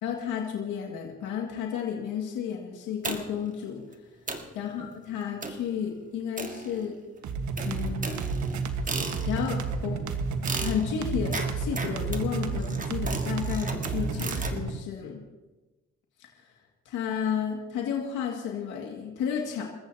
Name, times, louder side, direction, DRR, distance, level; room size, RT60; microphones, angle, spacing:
voice 1, 0.0-3.8 4.5-6.9 7.7-8.2 9.3-10.0 10.6-15.2 16.2-16.3 16.9-19.6, left 8 dB, 90° left, 0 dB, 2.2 m, -32 dB
sound 1, 3.0-3.5 3.9-4.0 4.3-4.6 5.4-5.7 6.4-7.1 7.6-9.6 10.5-14.6, right 3 dB, 25° right, 1.8 m, -36 dB
sound 2, 7.2-14.8, right 4 dB, 70° right, 1.5 m, -31 dB
28.5 x 14.5 x 2.9 m, 1.2 s
cardioid pair, 90°, 30 cm